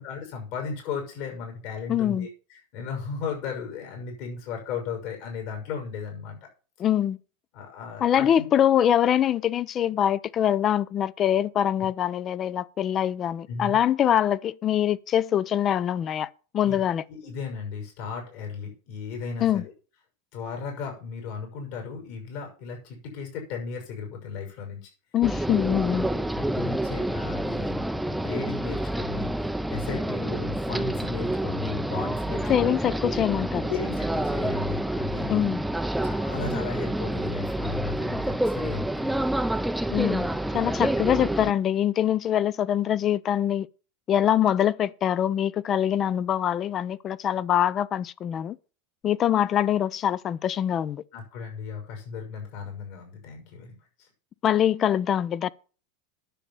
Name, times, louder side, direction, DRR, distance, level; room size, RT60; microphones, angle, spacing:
voice 1, 0.0-2.3 2.7-6.4 7.5-8.4 13.5-13.8 16.6-16.8 17.1-19.7 20.3-24.9 26.1-29.3 29.7-32.7 33.7-35.5 36.0-39.3 51.1-54.1, left 5 dB, 60° left, 6.2 m, -35 dB
voice 2, 1.9-2.3 6.8-7.2 8.0-17.0 19.4-19.6 25.1-26.1 32.5-33.7 35.3-35.6 39.9-40.3 40.5-43.7 44.1-48.6 49.0-51.0 54.4-55.5, left 10 dB, 35° left, 0.6 m, -24 dB
sound 1, 25.2-41.5, right 1 dB, 5° right, 0.6 m, -28 dB
10.0 x 7.4 x 7.0 m
supercardioid pair, 130°, 0 cm